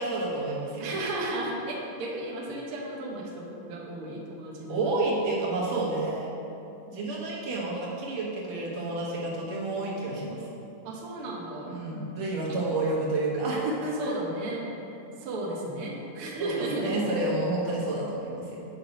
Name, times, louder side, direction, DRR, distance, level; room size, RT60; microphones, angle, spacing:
voice 1, 0.0-0.9 4.7-6.3 6.9-10.4 11.7-14.1 16.4-18.6, right 2 dB, 60° right, -4 dB, 2.3 m, -30 dB
voice 2, 0.8-4.9 10.8-11.7 12.4-12.6 13.9-14.7 15.2-17.1, right 1 dB, 75° right, -2 dB, 1.2 m, -34 dB
7.9 x 5.7 x 5.0 m, 2.9 s
omnidirectional pair, 3.9 m